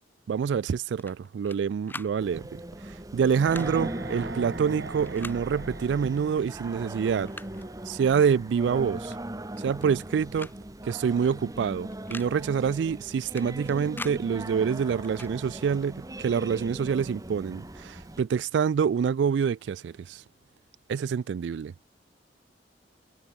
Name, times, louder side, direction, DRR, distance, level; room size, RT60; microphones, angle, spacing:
voice 1, 0.3-7.3 7.8-9.1 9.6-10.5 10.8-20.2 20.9-21.7, right 7 dB, 70° right, 0.3 m, -26 dB
sound 1, 1.0-1.6 1.9-2.1 3.3-3.7 5.0-5.4 6.5-6.6 7.0-7.7 9.0-9.2 9.5-10.1 10.4-10.6 10.8-10.9 11.9-12.3 13.4-14.2 15.0-15.3, left 2 dB, 10° left, 2.1 m, -42 dB
Singing, 2.2-18.2, right 1 dB, 20° right, 1.3 m, -39 dB
sound 2, 3.2-8.3 8.6-8.7, right 3 dB, 85° right, 2.1 m, -42 dB
head